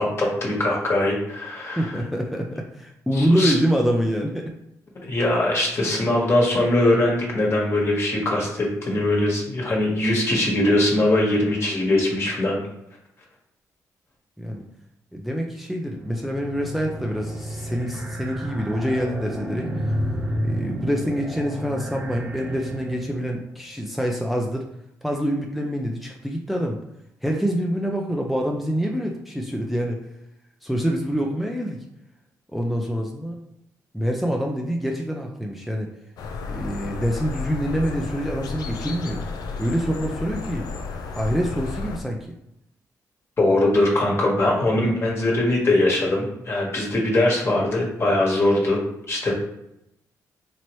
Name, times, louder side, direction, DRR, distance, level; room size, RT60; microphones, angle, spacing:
voice 1, 0.0-1.9 3.1-3.5 5.0-12.6 43.4-48.8 49.1-49.3, left 1 dB, 40° left, -2 dB, 1.4 m, -21 dB
voice 2, 1.8-4.5 14.4-14.6 15.1-20.0 20.4-24.6 25.0-26.8 27.2-30.0 30.6-31.8 32.5-33.4 33.9-35.9 36.5-39.2 39.6-40.7 41.2-42.2, equal, ahead, 0 dB, 0.5 m, -26 dB
sound 1, 15.9-23.3, equal, 25° right, 1.0 m, -31 dB
sound 2, 36.2-42.0, left 4 dB, 80° left, 0.5 m, -32 dB
4.4 x 2.9 x 3.1 m, 0.83 s
cardioid pair, 80°, 7 cm